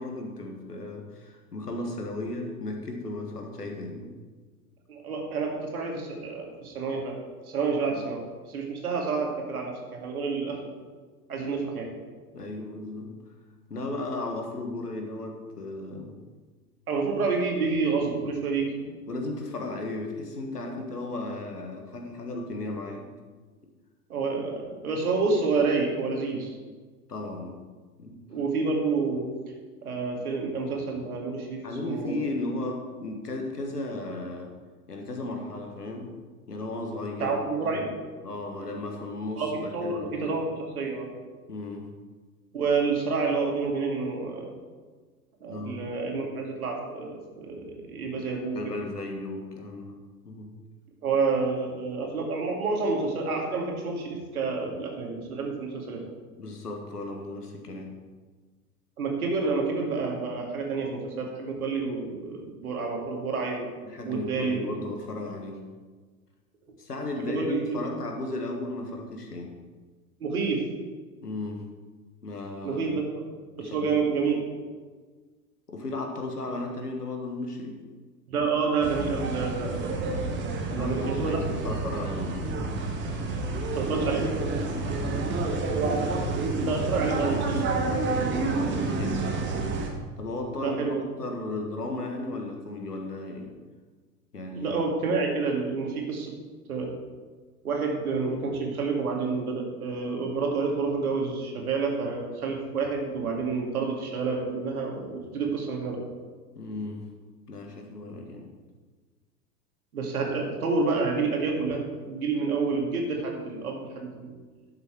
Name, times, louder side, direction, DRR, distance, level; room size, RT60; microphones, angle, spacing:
voice 1, 0.0-4.1 7.9-8.0 12.3-13.1 13.7-16.2 19.1-23.1 27.1-27.6 28.0-28.2 31.6-34.5 34.9-36.2 36.5-37.4 37.7-37.8 38.2-40.4 41.5-41.9 45.5-45.8 48.0-48.3 48.5-50.0 50.3-50.5 56.4-58.0 63.8-65.6 66.8-69.6 71.2-71.6 72.2-73.0 73.6-73.9 75.7-77.8 80.7-82.5 84.7-86.4 88.5-89.2 90.2-93.5 94.3-94.7 106.6-107.1 107.5-108.5, left 2 dB, 80° left, 3 dB, 1.7 m, -35 dB
voice 2, 4.9-7.2 7.4-10.7 11.3-11.9 16.9-18.9 24.1-26.6 28.3-29.3 29.8-32.3 37.2-37.9 39.4-40.4 40.8-41.1 42.5-44.5 45.4-48.7 51.0-56.0 59.0-63.7 64.0-64.8 67.2-67.8 70.2-70.7 72.6-73.2 73.6-74.4 78.3-81.4 81.8-81.9 83.7-84.3 86.4-87.7 90.6-91.1 94.5-96.3 96.7-96.9 97.6-106.0 109.9-114.3, right 4 dB, 70° right, 1 dB, 2.2 m, -29 dB
sound 1, 78.8-89.9, right 3 dB, 25° right, 1.5 m, -29 dB
11.5 x 6.8 x 4.6 m, 1.4 s
figure-of-eight pair, 95°, 46 cm